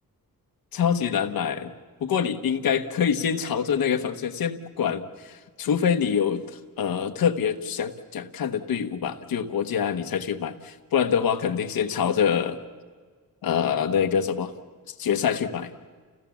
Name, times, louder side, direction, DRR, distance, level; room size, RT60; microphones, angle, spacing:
voice 1, 0.7-1.7 2.0-12.6 13.4-14.5 14.9-15.7, left 7 dB, 85° left, 7 dB, 1.1 m, -25 dB
29.0 x 16.5 x 7.1 m, 1.5 s
cardioid pair, 85°, 35 cm